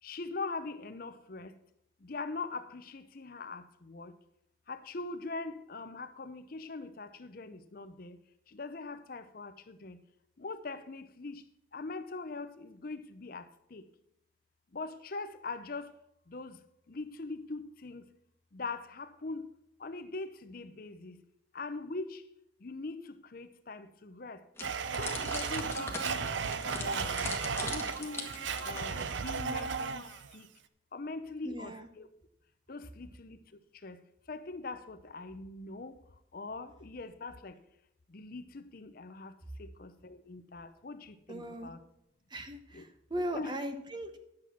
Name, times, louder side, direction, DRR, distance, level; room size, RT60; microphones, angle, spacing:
voice 1, 0.0-1.5 2.0-4.1 4.7-8.2 8.5-10.0 10.4-11.4 11.7-13.4 13.7-13.8 14.7-15.9 16.3-16.6 16.9-18.0 18.5-19.4 19.8-21.2 21.5-22.2 22.6-23.0 23.3-24.4 25.0-26.3 26.6-27.3 27.7-28.3 28.6-30.1 30.3-30.5 30.9-32.1 32.7-33.4 33.8-34.0 34.3-35.9 36.3-37.5 38.1-39.3 39.6-41.8 42.7-42.8 43.1-43.6, left 3 dB, 45° left, 11 dB, 0.6 m, -42 dB
sound 1, 24.6-29.3, left 3 dB, 15° left, 1.4 m, -41 dB
Domestic sounds home sounds, 24.6-30.3, right 5 dB, 70° right, 0.6 m, -35 dB
voice 2, 31.4-31.9 41.3-41.7 42.3-44.2, right 1 dB, 25° right, 8 dB, 0.9 m, -38 dB
10.5 x 7.6 x 5.8 m, 0.79 s
head